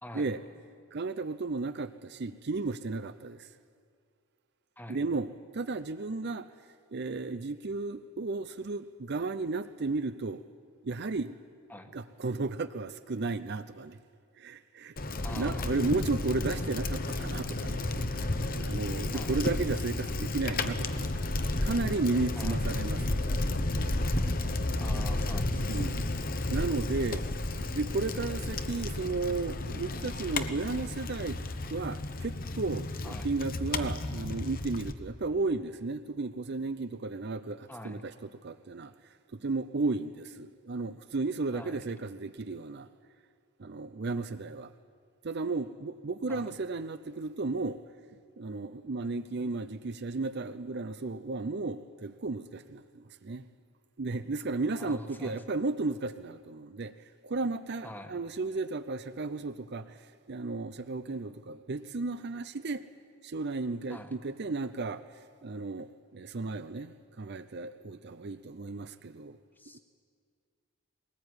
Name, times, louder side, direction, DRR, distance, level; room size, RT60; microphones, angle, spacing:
voice 1, 0.9-3.5 4.9-6.5 6.9-10.4 10.8-11.4 11.9-14.0 14.4-14.9 15.3-17.8 18.2-21.1 21.6-23.2 25.5-26.1 26.5-27.2 27.7-31.4 31.7-38.1 38.4-38.9 39.3-42.9 43.6-44.7 45.2-47.8 48.1-53.5 54.0-62.8 63.2-65.0 65.4-69.4, right 3 dB, 50° right, 12 dB, 0.6 m, -34 dB
Bicycle, 15.0-34.9, left 2 dB, 40° left, 1.0 m, -32 dB
voice 2, 15.2-15.8 19.1-19.4 22.3-22.6 24.8-25.8 33.0-33.3 37.7-38.0 41.5-41.8 46.3-46.5 54.8-55.4 57.8-58.2 63.9-64.1 69.6-69.8, left 1 dB, 10° left, 6 dB, 1.5 m, -45 dB
21.0 x 19.0 x 9.6 m, 2.2 s
head